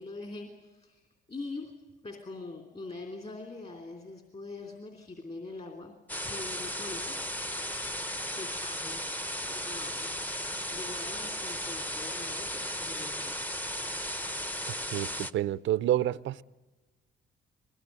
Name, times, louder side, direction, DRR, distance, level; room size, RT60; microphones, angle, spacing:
voice 1, 0.0-1.7 2.0-7.2 8.3-9.0 9.5-10.5 10.7-13.4, left 3 dB, 35° left, 3.3 m, -43 dB
sound 1, 6.1-15.3, equal, 10° left, 0.9 m, -35 dB
voice 2, 14.9-16.4, right 12 dB, 70° right, 0.7 m, -28 dB
21.5 x 19.0 x 9.5 m
cardioid pair, 90°, 20 cm